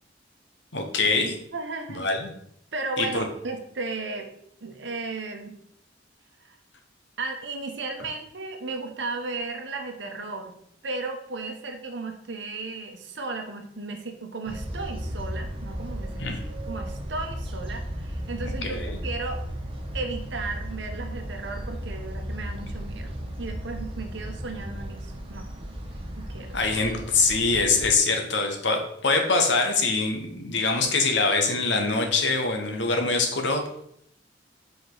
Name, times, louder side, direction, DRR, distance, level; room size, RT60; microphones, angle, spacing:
voice 1, 0.7-1.4 1.9-2.3 3.0-3.3 16.2-16.4 18.4-19.0 26.5-33.6, left 3 dB, 70° left, 4 dB, 1.1 m, -24 dB
voice 2, 1.5-2.1 2.7-4.3 4.6-5.6 6.4-6.6 7.2-10.5 10.8-16.3 16.7-19.4 19.9-25.5 26.2-26.6, right 3 dB, 70° right, 4 dB, 0.9 m, -35 dB
sound 1, 14.5-28.0, equal, 30° right, 1.0 m, -35 dB
5.2 x 4.9 x 3.9 m, 0.70 s
head